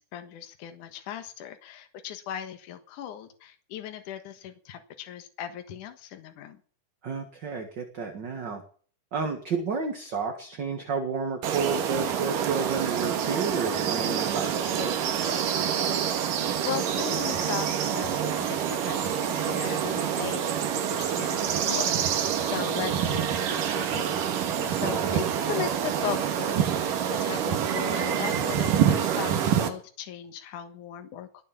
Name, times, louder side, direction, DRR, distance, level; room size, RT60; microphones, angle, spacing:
voice 1, 0.1-6.6 16.6-24.1 24.4-31.4, left 10 dB, 70° left, 7 dB, 2.9 m, -38 dB
voice 2, 7.0-8.6 9.1-15.5 24.6-25.4, right 4 dB, 40° right, 5 dB, 1.9 m, -31 dB
sound 1, 11.4-29.7, right 8 dB, 80° right, 3.4 m, -27 dB
20.5 x 7.6 x 7.2 m, 0.44 s
omnidirectional pair, 3.8 m